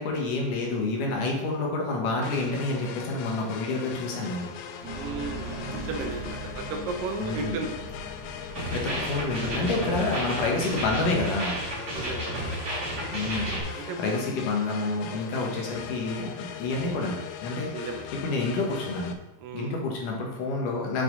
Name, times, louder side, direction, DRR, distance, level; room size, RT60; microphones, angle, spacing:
voice 1, 0.0-4.5 7.2-7.6 8.7-11.6 13.1-17.7 18.1-19.2 19.5-21.0, left 3 dB, 70° left, -1 dB, 3.0 m, -28 dB
sound 1, 2.2-19.1, left 8 dB, 90° left, 1.6 m, -40 dB
sound 2, 4.8-9.8, right 2 dB, 50° right, 2.7 m, -39 dB
voice 2, 4.9-7.8 9.8-10.0 11.9-12.6 13.7-14.0 15.4-15.7 17.7-18.1 19.4-19.8, right 4 dB, 80° right, 3 dB, 2.6 m, -35 dB
sound 3, 8.6-13.6, right 1 dB, 30° right, 3.7 m, -32 dB
9.2 x 5.9 x 4.1 m, 0.94 s
omnidirectional pair, 4.0 m